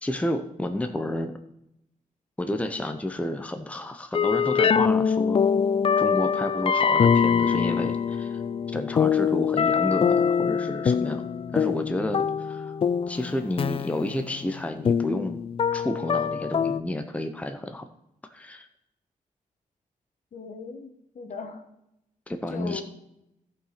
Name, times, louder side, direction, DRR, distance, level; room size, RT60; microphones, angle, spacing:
voice 1, 0.0-1.3 2.4-5.4 6.0-8.4 8.7-11.2 11.5-12.7 13.1-15.4 15.7-17.9 18.3-18.7 22.3-22.8, left 1 dB, 10° left, 6 dB, 0.9 m, -31 dB
sound 1, 4.1-16.8, left 6 dB, 40° left, 0.4 m, -24 dB
voice 2, 20.3-21.6 22.5-22.8, left 5 dB, 60° left, 6 dB, 1.7 m, -38 dB
14.5 x 5.8 x 5.8 m, 0.83 s
cardioid pair, 100°, 15 cm